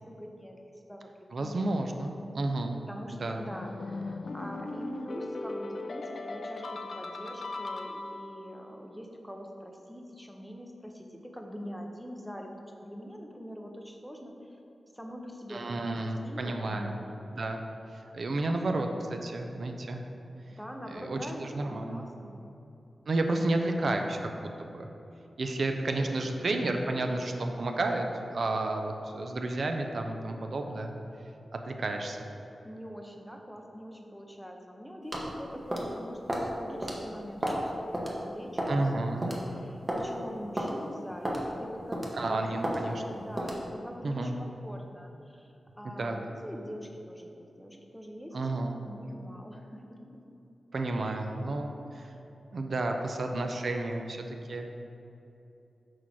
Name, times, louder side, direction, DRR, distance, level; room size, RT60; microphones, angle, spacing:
voice 1, 0.0-2.0 2.9-14.6 14.9-17.1 18.5-18.6 20.5-22.5 32.6-42.4 42.7-50.2 50.9-51.2, equal, ahead, 2 dB, 0.6 m, -44 dB
voice 2, 1.3-2.7 3.2-3.4 15.5-16.9 17.4-17.6 17.9-20.0 20.9-22.0 23.1-24.3 24.6-24.9 25.4-28.1 28.3-30.9 31.5-32.2 38.7-39.3 42.1-43.0 44.0-44.3 45.8-46.2 48.3-48.7 50.7-52.1 52.5-54.7, right 2 dB, 55° right, 4 dB, 0.5 m, -31 dB
sound 1, 3.5-8.4, left 2 dB, 55° left, 0.4 m, -38 dB
sound 2, 35.1-35.3 35.7-35.9 36.3-36.5 36.8-37.0 37.4-37.6 37.9-38.1 38.6-38.8 39.2-39.4 39.9-40.0 40.6-40.7 41.2-41.4 41.9-42.2 42.6-42.8 43.4-43.6, right 1 dB, 20° right, 0.9 m, -31 dB
6.3 x 4.7 x 5.8 m, 2.9 s
wide cardioid pair, 160°, 0 cm